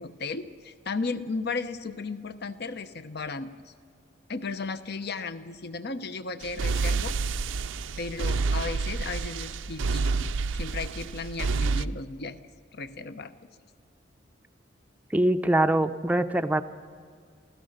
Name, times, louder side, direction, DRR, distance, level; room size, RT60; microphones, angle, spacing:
voice 1, 0.0-3.7 4.3-7.2 8.0-10.3 10.5-12.4 12.7-13.3, left 4 dB, 60° left, 11 dB, 0.9 m, -35 dB
sound 1, 6.4-11.8, right 4 dB, 75° right, 0.5 m, -29 dB
voice 2, 15.1-16.6, right 1 dB, 10° right, 7 dB, 0.5 m, -23 dB
27.5 x 16.0 x 6.6 m, 2.1 s
head